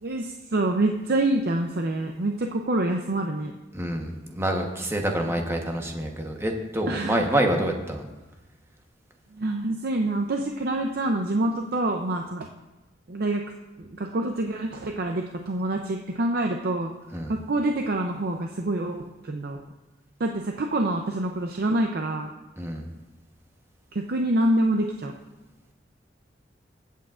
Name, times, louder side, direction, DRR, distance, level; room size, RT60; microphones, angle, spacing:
voice 1, 0.0-3.5 6.9-7.3 9.3-12.5 13.1-13.4 13.8-16.9 17.3-19.6 20.2-22.3 23.9-25.1, right 1 dB, 55° right, 3 dB, 0.6 m, -26 dB
voice 2, 3.7-8.1 17.1-17.3 22.6-22.8, right 1 dB, 15° right, 2 dB, 1.1 m, -27 dB
21.0 x 8.4 x 2.5 m, 1.1 s
head